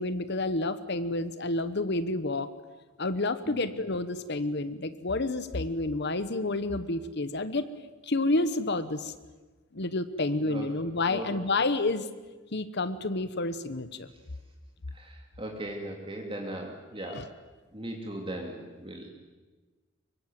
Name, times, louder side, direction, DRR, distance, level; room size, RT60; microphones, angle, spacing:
voice 1, 0.0-2.5 3.0-7.7 8.0-9.1 9.7-12.1 12.5-14.1 17.1-17.2, left 2 dB, 50° left, 13 dB, 1.1 m, -29 dB
voice 2, 10.4-10.7 11.1-11.3 14.9-17.3 17.7-19.1, right 1 dB, 25° right, 1 dB, 2.7 m, -38 dB
24.5 x 23.5 x 9.2 m, 1.3 s
head